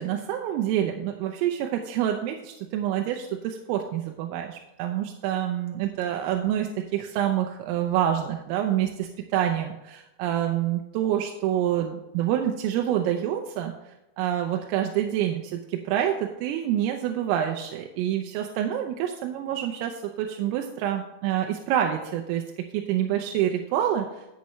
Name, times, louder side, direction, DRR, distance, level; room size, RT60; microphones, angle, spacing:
voice 1, 0.0-13.7 14.2-22.4 22.7-24.4, right 11 dB, 90° right, 3 dB, 3.4 m, -27 dB
11.0 x 8.3 x 3.2 m, 0.94 s
omnidirectional pair, 5.7 m